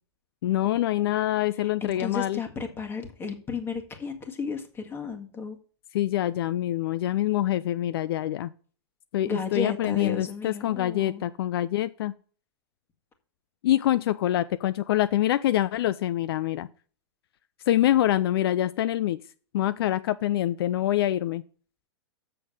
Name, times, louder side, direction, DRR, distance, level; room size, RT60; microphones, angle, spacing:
voice 1, 0.4-2.4 5.9-8.5 9.1-12.1 13.6-16.7 17.7-19.2 19.5-21.4, left 13 dB, 60° left, 15 dB, 0.5 m, -25 dB
voice 2, 1.8-5.6 9.3-11.3, left 4 dB, 15° left, 4 dB, 1.8 m, -34 dB
7.7 x 6.3 x 6.6 m, 0.41 s
hypercardioid pair, 135°, 14 cm